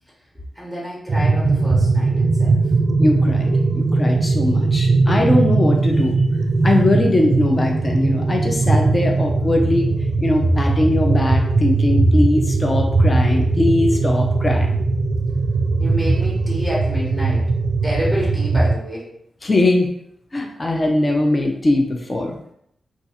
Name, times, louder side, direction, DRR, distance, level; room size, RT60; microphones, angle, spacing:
voice 1, 0.5-2.6 15.8-17.4 17.8-19.1, equal, 5° left, -5 dB, 1.0 m, -28 dB
sound 1, 1.1-18.8, right 3 dB, 50° right, 0.3 m, -19 dB
voice 2, 3.0-6.2 6.6-9.9 10.2-14.8 19.4-19.9 20.3-22.4, left 2 dB, 30° left, 1 dB, 0.5 m, -20 dB
2.5 x 2.4 x 4.0 m, 0.72 s
wide cardioid pair, 100°, 0 cm